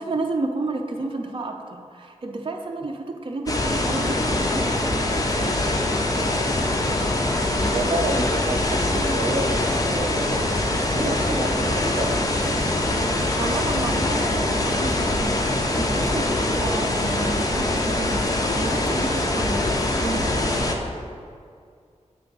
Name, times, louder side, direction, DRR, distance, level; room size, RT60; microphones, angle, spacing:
voice 1, 0.0-5.7 13.4-15.4 15.8-19.6 20.0-20.4, right 2 dB, 45° right, 2 dB, 0.5 m, -31 dB
sound 1, 3.5-20.7, left 1 dB, 30° left, 0.7 m, -23 dB
voice 2, 7.7-10.3 10.9-12.7, right 2 dB, 75° right, 2 dB, 0.8 m, -29 dB
8.0 x 3.4 x 5.3 m, 2.2 s
wide cardioid pair, 110°, 12 cm